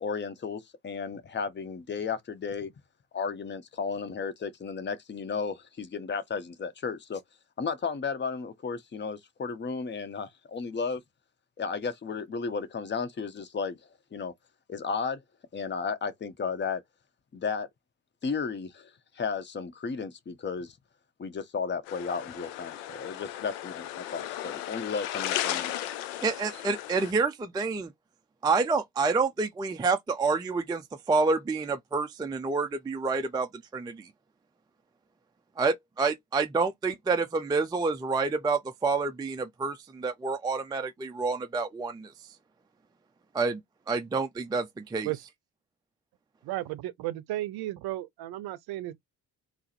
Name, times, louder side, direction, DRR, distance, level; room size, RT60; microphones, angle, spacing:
voice 1, 0.0-2.7 3.1-7.2 7.6-11.0 11.6-13.8 14.1-14.3 14.7-15.2 15.5-16.8 17.3-17.7 18.2-20.8 21.2-25.7, left 5 dB, 25° left, 0.9 m, -34 dB
sound 1, 21.9-27.1, left 12 dB, 65° left, 0.6 m, -35 dB
voice 2, 26.2-27.9 28.4-30.8 31.1-34.1 35.6-42.1 43.3-43.6 43.9-45.1, right 4 dB, 10° right, 0.4 m, -28 dB
voice 3, 46.4-49.0, right 15 dB, 55° right, 0.7 m, -34 dB
3.5 x 2.1 x 4.2 m
figure-of-eight pair, 45°, 46 cm